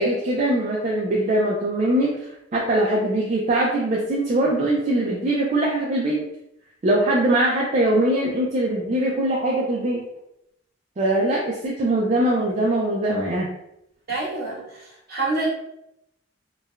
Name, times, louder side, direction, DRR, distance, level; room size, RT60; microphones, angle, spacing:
voice 1, 0.0-2.1 2.5-6.2 6.8-10.0 11.0-13.5, right 1 dB, 35° right, -3 dB, 0.4 m, -22 dB
voice 2, 14.1-15.5, right 2 dB, 55° right, -6 dB, 1.0 m, -27 dB
3.1 x 2.1 x 2.3 m, 0.81 s
head